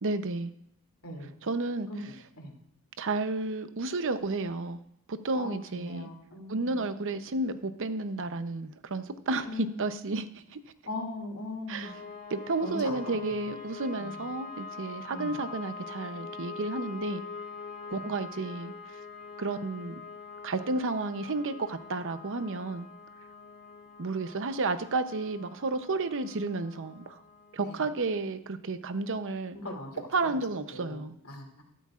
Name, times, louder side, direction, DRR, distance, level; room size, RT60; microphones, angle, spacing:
voice 1, 0.0-0.5 1.4-1.9 3.0-4.8 5.1-6.1 6.5-10.6 11.7-11.9 12.3-17.2 17.9-18.7 19.4-20.0 20.4-22.9 24.0-27.2 27.5-29.6 30.1-31.2, right 3 dB, 60° right, 11 dB, 0.7 m, -32 dB
voice 2, 1.9-2.5 5.3-6.8 9.4-9.8 10.9-11.9 12.6-13.4 14.0-14.2 15.1-15.3 17.9-18.0 27.6-27.8 29.5-30.0 30.7-31.6, left 2 dB, 70° left, 1 dB, 2.6 m, -40 dB
sound 1, 11.8-28.0, left 4 dB, 45° left, 2.7 m, -44 dB
13.0 x 12.5 x 2.5 m, 0.75 s
head